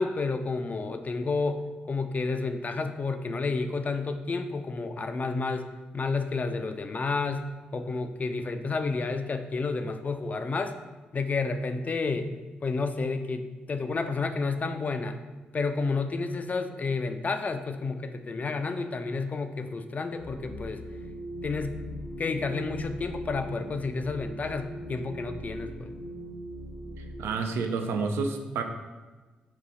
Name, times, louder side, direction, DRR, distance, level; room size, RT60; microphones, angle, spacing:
voice 1, 0.0-5.7 5.9-7.5 7.7-10.7 11.1-12.3 12.6-15.2 15.5-20.8 21.4-21.8 22.2-25.9, left 4 dB, 40° left, 8 dB, 0.3 m, -30 dB
sound 1, 20.2-27.4, equal, 35° right, 0.8 m, -40 dB
voice 2, 27.0-28.6, right 4 dB, 70° right, 5 dB, 0.4 m, -30 dB
4.1 x 2.4 x 4.0 m, 1.3 s
hypercardioid pair, 40°, 4 cm